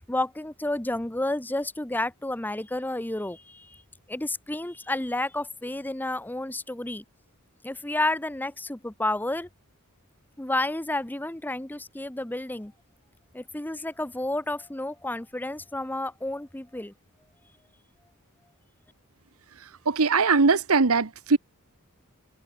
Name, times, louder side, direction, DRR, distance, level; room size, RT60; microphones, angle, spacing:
voice 1, 0.1-3.8 4.1-7.0 7.6-9.5 10.4-12.7 13.3-16.9, left 1 dB, 10° left, 0.7 m, -31 dB
voice 2, 19.6-21.4, right 4 dB, 80° right, 1.0 m, -21 dB
head